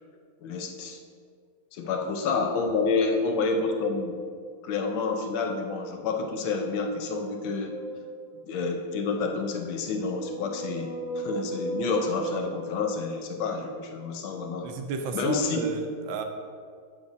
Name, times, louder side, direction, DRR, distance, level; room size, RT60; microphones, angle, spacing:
voice 1, 0.4-1.0 1.7-4.2 4.6-7.7 8.5-14.7 15.1-15.6, left 4 dB, 75° left, 4 dB, 1.5 m, -29 dB
sound 1, 7.0-8.6 9.5-13.4, right 2 dB, 60° left, 0.5 m, -37 dB
voice 2, 14.6-16.2, right 5 dB, 75° right, 5 dB, 1.3 m, -32 dB
8.1 x 7.1 x 2.6 m, 2.1 s
omnidirectional pair, 2.2 m